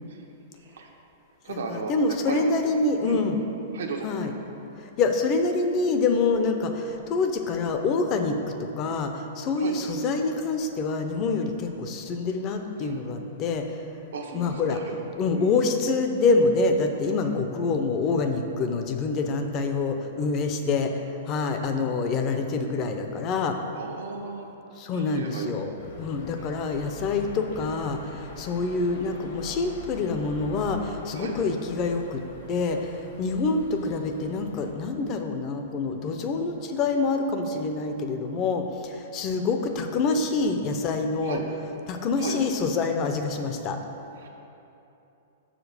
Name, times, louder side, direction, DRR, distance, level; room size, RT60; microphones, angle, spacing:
voice 1, 0.6-0.9 1.4-2.5 3.0-3.2 3.7-4.1 9.6-9.8 12.8-13.0 14.1-15.0 15.3-15.5 23.7-24.6 24.9-25.5 31.1-31.4 41.2-41.5 42.2-42.4 44.2-44.3, right 4 dB, 80° right, 2 dB, 1.0 m, -35 dB
voice 2, 1.5-3.4 4.0-4.3 4.8-13.8 14.3-14.8 15.2-23.6 24.8-25.7 26.0-32.2 32.5-41.4 41.9-43.8, left 3 dB, 25° left, 6 dB, 0.6 m, -26 dB
sound 1, 25.8-34.7, left 3 dB, 60° left, 1.1 m, -43 dB
6.7 x 5.0 x 6.6 m, 2.9 s
hypercardioid pair, 160°, 0 cm